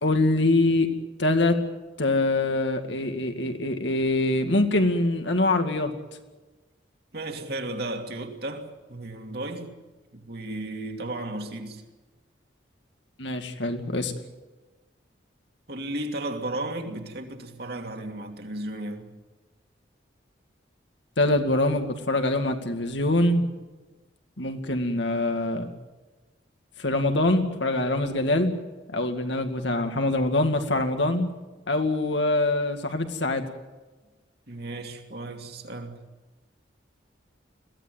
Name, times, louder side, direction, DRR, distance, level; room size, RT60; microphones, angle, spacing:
voice 1, 0.0-0.9 1.2-1.6 2.0-5.9 13.2-14.1 21.2-23.5 24.4-25.7 26.8-28.5 28.9-31.3 31.7-33.5, left 2 dB, 70° left, 2.3 m, -24 dB
voice 2, 7.1-9.7 10.1-11.8 15.7-19.1 34.5-36.0, right 2 dB, 55° right, 2.8 m, -34 dB
22.0 x 16.5 x 9.3 m
head